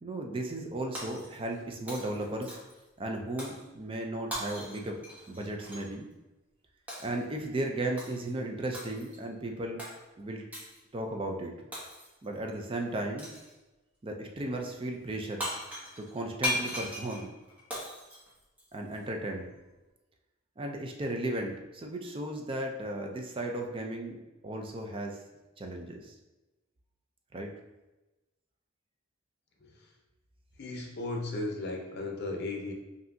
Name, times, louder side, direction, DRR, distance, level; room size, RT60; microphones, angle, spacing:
voice 1, 0.0-2.6 3.0-5.0 5.3-6.1 7.0-9.8 10.2-10.4 10.9-11.5 12.2-13.3 14.0-15.6 16.0-17.3 18.7-19.5 20.6-25.2 25.6-26.1 27.3-27.5, right 1 dB, 25° right, 2 dB, 0.4 m, -35 dB
Shatter, 0.9-1.6 1.9-2.8 3.4-3.6 4.3-5.9 6.9-7.2 8.0-8.3 8.7-9.2 9.8-10.0 10.5-10.8 11.7-12.3 13.2-13.5 15.1-15.2 15.4-19.0, left 1 dB, 10° right, 0.9 m, -38 dB
voice 2, 30.6-32.7, left 2 dB, 55° left, 1 dB, 0.7 m, -36 dB
5.5 x 2.7 x 2.6 m, 1.1 s
head